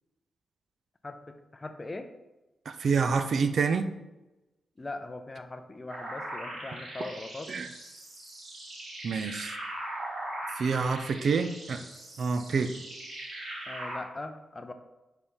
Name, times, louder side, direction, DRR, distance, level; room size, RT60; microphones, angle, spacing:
voice 1, 1.0-2.1 4.8-7.5 13.7-14.7, left 2 dB, 20° left, 7 dB, 0.5 m, -40 dB
voice 2, 2.7-3.9 7.5-7.7 9.0-9.6 10.6-11.8 12.2-12.8, right 5 dB, 55° right, 9 dB, 0.4 m, -27 dB
sound 1, 5.9-14.0, right 1 dB, 75° right, 2.4 m, -40 dB
5.6 x 4.5 x 5.0 m, 1.0 s
wide cardioid pair, 145°, 0 cm